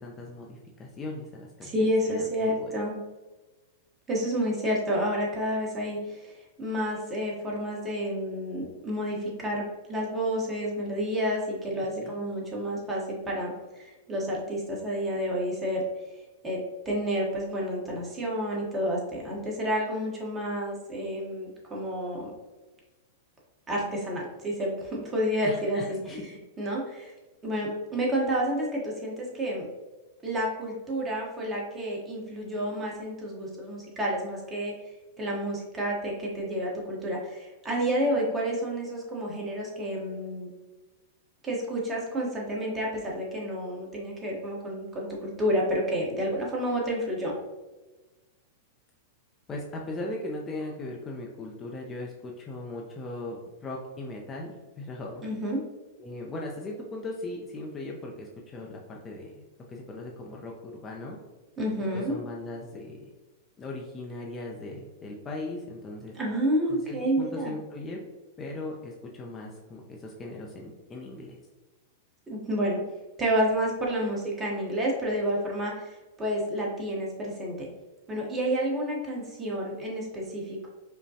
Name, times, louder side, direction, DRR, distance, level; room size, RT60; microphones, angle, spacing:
voice 1, 0.0-2.7 12.0-12.1 25.4-26.2 49.5-55.2 56.0-61.2 61.9-63.0 63.6-66.1 66.7-68.0 68.4-71.4, left 2 dB, 25° left, -1 dB, 0.5 m, -38 dB
voice 2, 1.6-3.0 4.1-9.6 9.9-15.8 16.4-16.6 16.8-22.3 23.7-26.2 26.6-27.1 27.4-29.7 30.2-34.7 35.2-40.5 41.4-47.4 55.2-55.6 61.6-62.1 66.1-67.5 72.3-72.8 73.2-77.7 78.1-80.7, equal, 20° right, -3 dB, 1.1 m, -30 dB
5.0 x 2.2 x 2.8 m, 1.2 s
hypercardioid pair, 125°, 0 cm